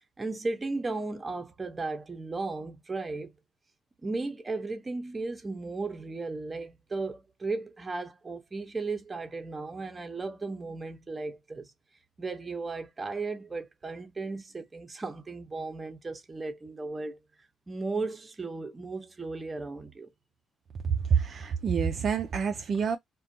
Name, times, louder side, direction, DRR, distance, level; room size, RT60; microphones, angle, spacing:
voice 1, 0.2-3.3 4.0-11.7 12.2-17.2 17.7-20.1, right 3 dB, 25° right, 0.7 m, -35 dB
voice 2, 20.8-23.0, right 6 dB, 50° right, 0.4 m, -27 dB
2.5 x 2.2 x 2.6 m
cardioid pair, 90°, 0 cm